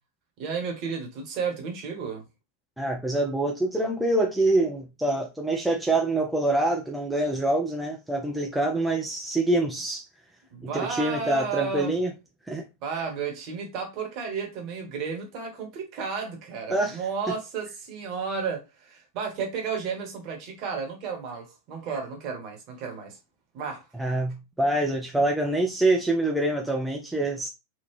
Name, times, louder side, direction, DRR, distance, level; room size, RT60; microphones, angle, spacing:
voice 1, 0.4-2.2 10.5-11.9 12.8-23.2 23.5-23.9, right 5 dB, 40° right, 1.2 m, -33 dB
voice 2, 2.8-10.0 10.6-12.1 12.5-12.6 16.7-17.0 24.0-27.5, right 2 dB, 5° right, 0.6 m, -25 dB
3.6 x 2.3 x 3.1 m
figure-of-eight pair, 90°, 0 cm